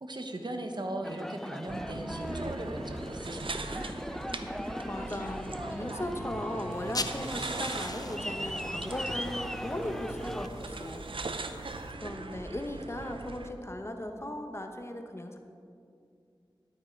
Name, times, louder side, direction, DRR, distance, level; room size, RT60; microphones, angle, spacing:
voice 1, 0.0-3.8, right 1 dB, 60° right, 4 dB, 1.2 m, -38 dB
Aircraft, 1.0-10.5, equal, 5° left, 0.4 m, -39 dB
sound 1, 1.7-13.5, right 3 dB, 85° right, 0.6 m, -40 dB
voice 2, 4.9-11.0 12.0-15.4, left 1 dB, 30° left, 5 dB, 1.1 m, -37 dB
sound 2, 6.7-11.9, left 3 dB, 45° left, 0.6 m, -43 dB
12.0 x 9.0 x 4.6 m, 2.4 s
wide cardioid pair, 45°, 9 cm